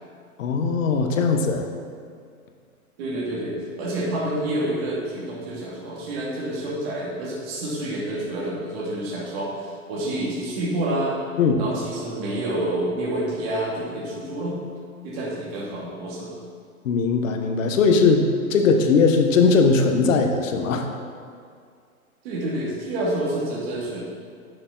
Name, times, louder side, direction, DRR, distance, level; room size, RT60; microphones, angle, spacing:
voice 1, 0.4-1.7 11.4-11.6 16.8-20.9, left 4 dB, 60° left, 4 dB, 1.2 m, -19 dB
voice 2, 3.0-11.1 11.6-14.6 15.0-16.3 22.2-24.0, right 1 dB, 40° right, -6 dB, 2.5 m, -28 dB
10.5 x 7.0 x 4.0 m, 2.2 s
hypercardioid pair, 160°, 43 cm